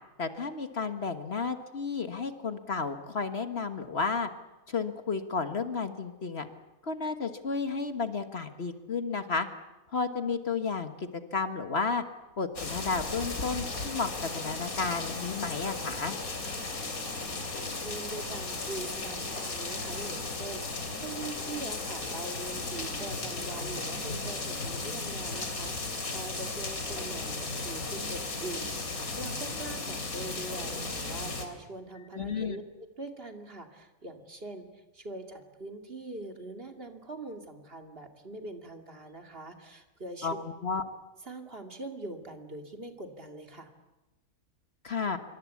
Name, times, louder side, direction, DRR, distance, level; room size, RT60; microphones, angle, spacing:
voice 1, 0.2-4.3 4.7-6.5 6.8-9.5 9.9-12.0 12.4-16.1 32.1-32.6 40.2-40.8 44.8-45.2, left 4 dB, 50° left, 9 dB, 1.5 m, -32 dB
sound 1, 12.1-23.1, left 2 dB, 70° left, 5.3 m, -51 dB
sound 2, 12.6-31.5, left 3 dB, 85° left, 3.5 m, -35 dB
voice 2, 17.3-40.3 41.2-43.7, right 2 dB, 40° right, 5 dB, 2.7 m, -43 dB
26.5 x 24.0 x 8.4 m, 1.0 s
omnidirectional pair, 1.5 m